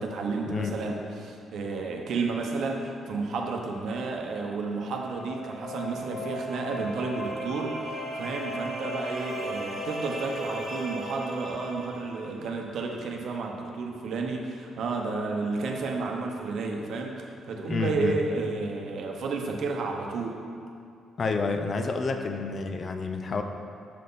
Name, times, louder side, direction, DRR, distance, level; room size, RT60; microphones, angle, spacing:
voice 1, 0.0-20.4, right 3 dB, 65° right, 1 dB, 0.8 m, -31 dB
sound 1, 4.7-12.4, equal, 15° right, 1.2 m, -36 dB
voice 2, 17.7-18.2 21.2-23.4, left 4 dB, 35° left, 6 dB, 0.4 m, -29 dB
6.5 x 5.7 x 3.9 m, 2.5 s
cardioid pair, 130°, 0 cm